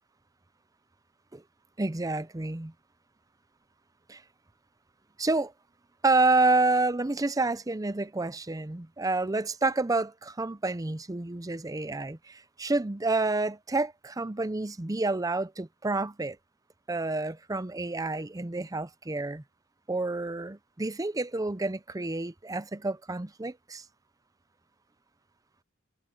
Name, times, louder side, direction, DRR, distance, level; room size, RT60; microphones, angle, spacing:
voice 1, 1.8-2.7 4.1-4.2 5.2-5.5 6.0-16.4 16.9-19.4 19.9-23.8, right 2 dB, 15° right, 0.6 m, -29 dB
head